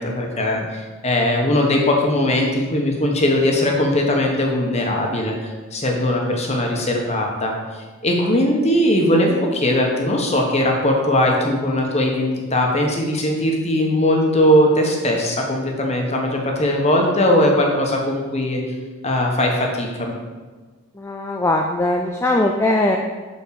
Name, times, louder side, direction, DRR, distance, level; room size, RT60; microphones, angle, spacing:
voice 1, 0.0-7.5 8.0-18.6 19.0-20.1, left 1 dB, 30° left, 0 dB, 1.2 m, -19 dB
voice 2, 21.0-23.0, left 1 dB, 10° left, 1 dB, 0.3 m, -20 dB
5.8 x 5.5 x 6.5 m, 1.4 s
head